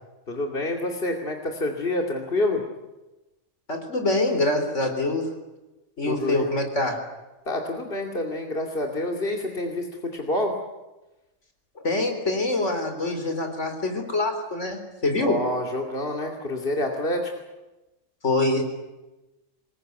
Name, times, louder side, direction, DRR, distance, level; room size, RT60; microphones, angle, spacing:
voice 1, 0.3-2.6 6.1-6.5 7.5-9.9 10.1-10.5 15.1-17.3, left 1 dB, 45° left, 1 dB, 2.8 m, -27 dB
voice 2, 3.7-5.3 6.0-7.0 11.8-15.4 18.2-18.6, left 2 dB, 65° left, 5 dB, 4.2 m, -25 dB
25.5 x 21.5 x 9.4 m, 1.1 s
omnidirectional pair, 1.3 m